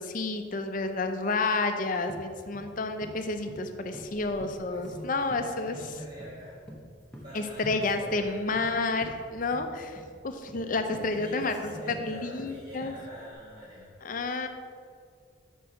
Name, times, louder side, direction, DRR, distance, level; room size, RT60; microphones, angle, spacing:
voice 1, 0.0-5.8 7.3-11.5 12.0-12.9 14.0-14.5, left 3 dB, 45° left, 7 dB, 0.5 m, -30 dB
sound 1, 2.1-2.2 2.5-2.7 3.0-3.2 3.5-3.7 3.9-4.1 4.4-5.0 5.3-5.5 5.7-5.9 6.2-6.4 6.7-6.8 7.1-7.3 7.6-7.8 8.1-8.7 9.0-9.1 9.5-9.7 10.0-10.1 10.5-10.6 10.9-11.1 11.4-11.5 11.9-12.1 12.4-12.5 12.8-13.0 13.3-13.4, equal, 5° left, 0.9 m, -44 dB
voice 2, 3.9-5.2 5.6-6.6 7.1-8.5 10.8-13.9, equal, 40° right, -7 dB, 1.4 m, -45 dB
5.4 x 4.5 x 6.3 m, 2.2 s
head